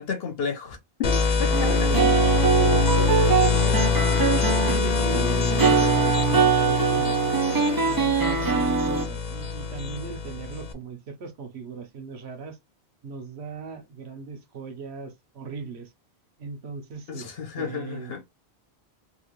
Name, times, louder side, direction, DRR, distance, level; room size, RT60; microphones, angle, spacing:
voice 1, 0.0-1.7 17.1-18.2, left 6 dB, 65° left, 1.0 m, -32 dB
sound 1, 1.0-10.7, left 4 dB, 50° left, 0.5 m, -24 dB
voice 2, 1.4-2.0 2.6-3.8 4.3-7.2 7.5-12.6 13.0-15.9 16.4-17.3 17.6-18.2, right 4 dB, 80° right, 1.1 m, -38 dB
sound 2, 1.5-9.0, right 6 dB, 30° right, 0.4 m, -23 dB
3.7 x 2.4 x 3.0 m
omnidirectional pair, 1.1 m